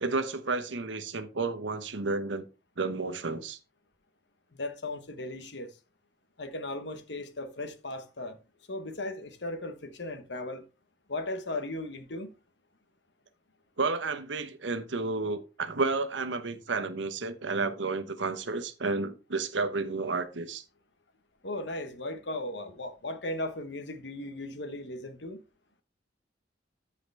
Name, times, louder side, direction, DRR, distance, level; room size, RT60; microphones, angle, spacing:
voice 1, 0.0-2.5 2.8-3.6 13.8-20.6, right 3 dB, 85° right, 1.1 m, -31 dB
voice 2, 4.5-5.7 6.4-8.4 8.7-10.6 11.1-12.3 21.4-25.4, left 2 dB, 70° left, 1.2 m, -37 dB
13.5 x 4.9 x 3.4 m
head